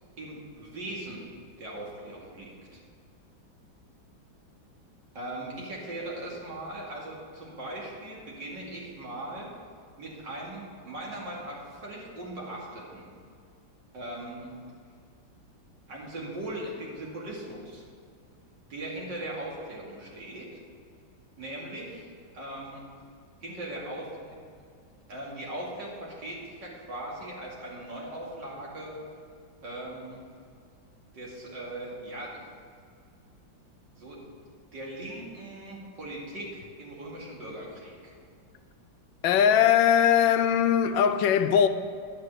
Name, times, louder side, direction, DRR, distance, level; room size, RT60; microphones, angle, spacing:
voice 1, 0.2-1.3 1.6-2.8 5.1-9.5 10.0-13.0 13.9-14.5 15.9-17.8 18.7-20.6 21.4-22.8 23.4-24.3 25.1-29.0 29.6-30.2 31.1-32.4 34.0-34.2 34.7-38.1, right 1 dB, 65° right, 3.0 m, -39 dB
voice 2, 39.2-41.7, left 9 dB, 85° left, 1.3 m, -21 dB
11.5 x 7.6 x 6.6 m
omnidirectional pair, 2.1 m